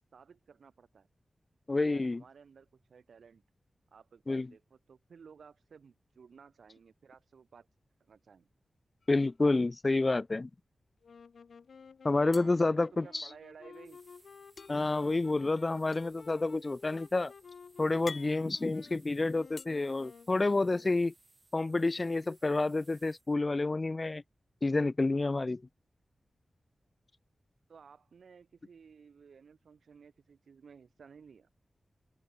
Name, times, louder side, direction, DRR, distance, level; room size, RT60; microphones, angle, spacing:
voice 1, 0.1-1.1 1.8-3.4 3.9-7.7 8.0-8.5 12.3-14.0 27.7-31.5, right 6 dB, 85° right, 1.7 m, -56 dB
voice 2, 1.7-2.2 4.3-4.5 9.1-10.5 12.0-13.3 14.7-17.3 17.8-21.1 21.5-24.2 24.6-25.6, left 2 dB, 30° left, 0.6 m, -29 dB
sound 1, 9.0-9.9 10.2-10.4 10.7-11.4 12.3-13.6 14.6-19.7, left 4 dB, 55° left, 1.0 m, -51 dB
sound 2, 11.0-21.0, left 6 dB, 80° left, 7.3 m, -54 dB
sound 3, 13.7-23.3, right 2 dB, 30° right, 6.4 m, -65 dB
open air
wide cardioid pair, 105°, 0 cm